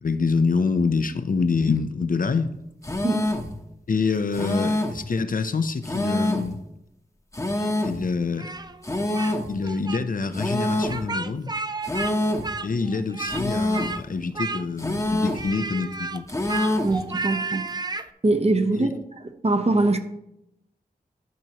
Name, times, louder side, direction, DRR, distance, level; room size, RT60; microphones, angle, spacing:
voice 1, 0.0-2.5 3.9-6.6 7.8-8.5 9.5-11.5 12.6-16.3 18.8-19.0, left 4 dB, 60° left, 0.6 m, -26 dB
sound 1, 2.8-3.5 4.3-5.1 5.8-6.6 7.3-8.0 8.8-9.5 10.3-11.0 11.8-12.5 13.3-14.0 14.8-15.5 16.3-17.0, left 1 dB, 20° left, 1.0 m, -26 dB
Speech, 8.4-9.4 9.6-10.0 10.8-12.1 12.4-13.4 13.7-14.0 14.3-14.9 15.3-18.1, right 3 dB, 25° right, 0.4 m, -32 dB
voice 2, 16.8-17.6 18.2-18.9 19.4-20.0, right 2 dB, 40° right, 0.9 m, -22 dB
12.0 x 6.1 x 3.0 m
wide cardioid pair, 75°, 16 cm